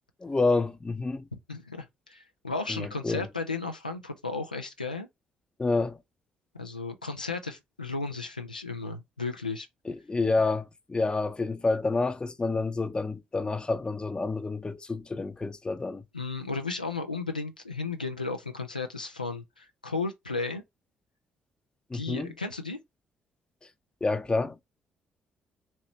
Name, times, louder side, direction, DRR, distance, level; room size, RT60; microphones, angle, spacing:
voice 1, 0.2-1.2 2.7-3.3 5.6-6.0 9.9-16.0 21.9-22.3 24.0-24.6, left 3 dB, 20° left, 0.6 m, -28 dB
voice 2, 1.3-5.1 6.5-9.7 16.1-20.6 21.9-22.8, left 3 dB, 90° left, 0.3 m, -34 dB
4.2 x 2.8 x 3.1 m
figure-of-eight pair, 45°, 4 cm